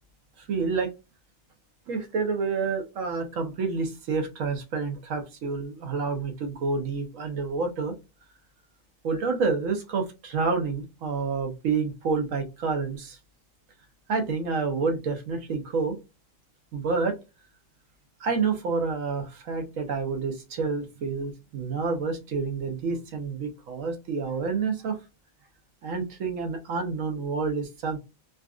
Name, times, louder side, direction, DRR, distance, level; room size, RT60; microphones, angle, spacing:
voice 1, 0.4-0.9 1.9-7.9 9.0-13.2 14.1-16.0 16.7-17.2 18.2-25.0 25.8-28.0, right 4 dB, 70° right, 6 dB, 1.1 m, -28 dB
3.8 x 2.4 x 2.3 m, 0.26 s
omnidirectional pair, 1.4 m